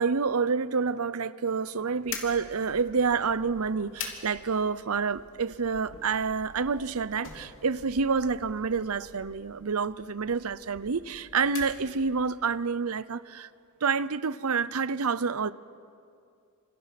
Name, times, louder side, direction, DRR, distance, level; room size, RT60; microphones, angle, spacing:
voice 1, 0.0-13.5 13.8-15.5, right 5 dB, 70° right, 0.7 m, -28 dB
sound 1, 2.0-12.4, left 5 dB, 60° left, 3.2 m, -45 dB
29.0 x 27.0 x 6.0 m
head